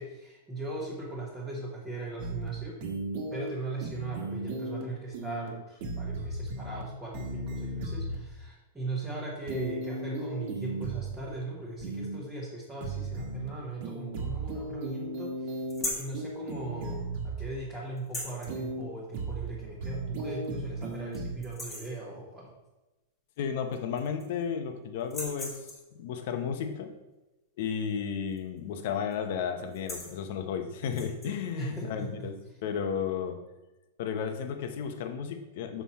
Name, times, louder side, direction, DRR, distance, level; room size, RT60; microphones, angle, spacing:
voice 1, 0.0-2.8 3.3-15.6 16.0-22.5 31.5-32.3, right 2 dB, 5° right, -7 dB, 1.2 m, -38 dB
sound 1, 2.2-2.5 2.8-3.5 3.8-4.8 5.1-5.5 5.8-6.8 7.1-8.2 9.5-11.2 11.8-12.2 12.8-13.5 13.8-15.8 16.1-17.5 18.5-18.8 19.1-19.5 19.8-21.4, right 2 dB, 45° right, 1.4 m, -36 dB
sound 2, 15.7-16.1 18.0-18.5 19.9-20.0 20.4-20.5 20.9-21.2 21.4-22.0 23.3-23.4 23.7-24.4 25.0-25.9 28.3-28.6 28.9-29.1 29.6-30.2 30.8-31.3, left 1 dB, 10° left, 1.6 m, -38 dB
voice 2, 23.4-25.7 25.9-26.9 27.6-32.4 32.6-33.4 34.0-35.8, left 7 dB, 50° left, 7 dB, 0.8 m, -33 dB
6.2 x 5.7 x 4.2 m, 1.1 s
supercardioid pair, 165°, 0 cm